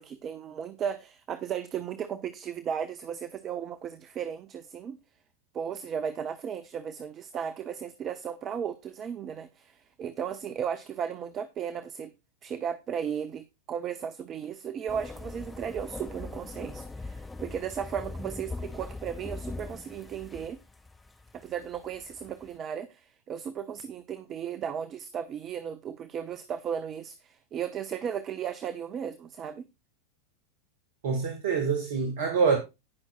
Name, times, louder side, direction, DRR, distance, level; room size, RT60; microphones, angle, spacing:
voice 1, 0.0-5.0 5.5-12.1 12.4-20.6 21.3-29.6, right 8 dB, 30° right, 0.9 m, -35 dB
sound 1, 14.9-22.6, left 3 dB, 10° left, 2.5 m, -41 dB
voice 2, 31.0-32.6, right 5 dB, 55° right, 2.0 m, -25 dB
18.5 x 6.3 x 2.4 m
figure-of-eight pair, 90°, 0 cm